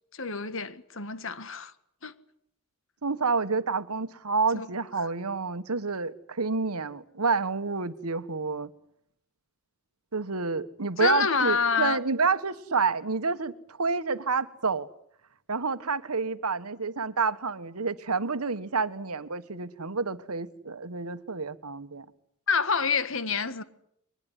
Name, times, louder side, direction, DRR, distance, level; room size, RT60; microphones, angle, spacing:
voice 1, 0.1-1.7 2.0-2.1 4.5-4.7 5.0-5.1 11.0-12.0 22.5-23.6, left 5 dB, 60° left, 1.7 m, -27 dB
voice 2, 3.0-8.7 10.1-14.9 15.5-22.1, right 4 dB, 85° right, 1.4 m, -29 dB
23.5 x 20.5 x 9.9 m
head